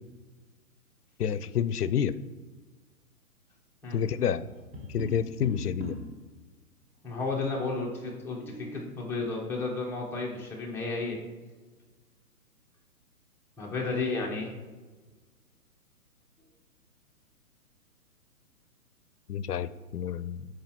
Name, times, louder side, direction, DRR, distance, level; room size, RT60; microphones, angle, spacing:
voice 1, 1.2-2.2 3.9-4.4 4.9-5.9 19.3-20.5, left 8 dB, 85° left, 16 dB, 0.5 m, -29 dB
Tap, 4.4-6.2 8.2-8.9, equal, 20° right, 1.2 m, -40 dB
voice 2, 7.0-11.2 13.6-14.5, left 3 dB, 5° left, -3 dB, 0.7 m, -32 dB
12.0 x 4.7 x 3.0 m, 1.3 s
figure-of-eight pair, 130°, 45 cm